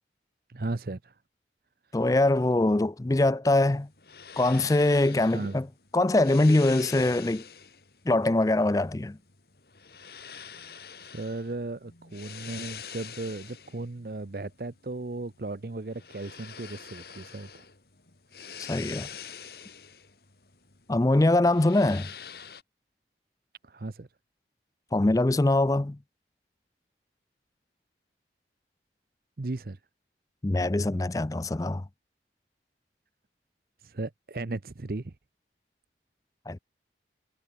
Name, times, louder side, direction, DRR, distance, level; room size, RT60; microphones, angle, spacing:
voice 1, 0.5-1.2 5.3-5.6 11.0-17.6 23.6-24.1 29.4-29.8 33.8-35.1, right 2 dB, 55° right, 0.7 m, -36 dB
voice 2, 1.9-3.9 4.4-5.7 5.9-7.4 8.1-9.2 18.7-19.1 20.9-22.1 24.9-26.0 30.4-31.8 36.5-36.6, left 2 dB, 20° left, 0.4 m, -23 dB
sound 1, 3.7-22.6, left 7 dB, 60° left, 2.7 m, -46 dB
head